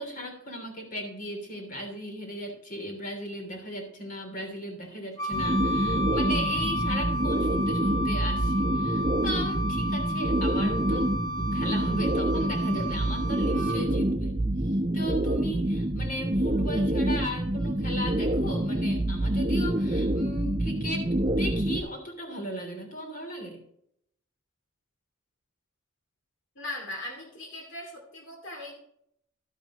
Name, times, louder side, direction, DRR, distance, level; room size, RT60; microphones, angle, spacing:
voice 1, 0.0-11.1 11.4-14.4 14.6-23.6, equal, 40° left, 2 dB, 3.2 m, -37 dB
Wind instrument woodwind instrument, 5.2-13.8, equal, 15° left, 1.8 m, -32 dB
sound 1, 5.3-21.8, right 1 dB, 25° right, 0.9 m, -27 dB
voice 2, 26.6-28.8, left 1 dB, 60° left, 1 dB, 2.5 m, -39 dB
12.0 x 10.5 x 3.1 m, 0.71 s
head